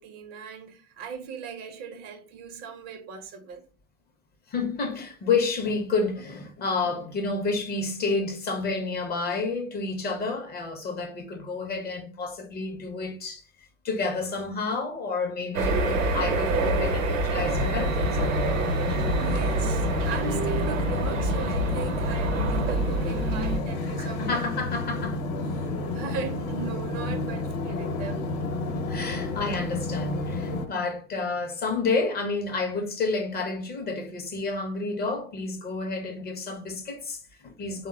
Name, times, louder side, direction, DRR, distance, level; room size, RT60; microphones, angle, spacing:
voice 1, 0.0-3.6 19.1-24.5 25.0-25.1 25.5-28.2, right 6 dB, 45° right, 0.5 m, -38 dB
voice 2, 4.5-13.4 13.8-18.6 24.0-25.2 28.8-37.9, left 4 dB, 25° left, 0.5 m, -30 dB
sound 1, 15.5-23.6, right 2 dB, 75° right, 0.7 m, -26 dB
sound 2, 17.4-30.7, left 2 dB, 55° left, 0.8 m, -31 dB
3.3 x 2.1 x 2.2 m
hypercardioid pair, 80°, 39 cm